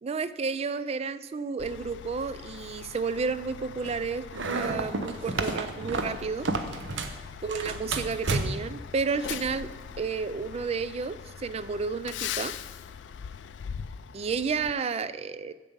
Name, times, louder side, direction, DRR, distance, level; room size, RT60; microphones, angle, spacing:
voice 1, 0.0-6.5 7.4-9.7 10.0-12.6 14.1-15.5, right 5 dB, 35° right, 14 dB, 0.3 m, -31 dB
Truck, 1.6-14.7, left 8 dB, 75° left, 0.3 m, -41 dB
sound 1, 4.3-7.2 7.5-8.8, right 3 dB, 85° right, 0.7 m, -31 dB
7.4 x 7.0 x 5.4 m, 1.3 s
head